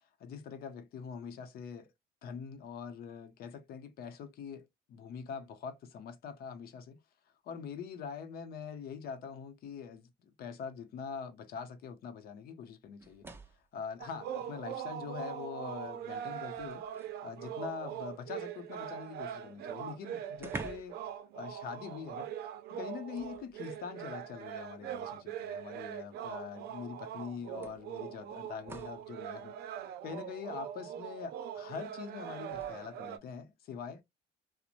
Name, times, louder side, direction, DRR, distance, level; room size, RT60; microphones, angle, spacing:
voice 1, 0.0-1.9 2.2-7.0 7.4-13.3 13.7-16.9 17.2-21.0 21.3-22.3 22.7-29.6 30.0-34.0, left 6 dB, 65° left, 0.7 m, -44 dB
sound 1, 13.0-13.7 15.1-15.2 15.7-17.3 19.3-19.4 19.7-19.8 20.3-21.1 21.4-21.6 23.1-23.9 25.0-25.1 26.6-26.7 27.6-29.1 32.4-32.7, right 2 dB, 15° right, 0.5 m, -48 dB
sound 2, 14.0-33.2, right 9 dB, 70° right, 0.5 m, -42 dB
2.9 x 2.1 x 2.4 m
cardioid pair, 110°, 17 cm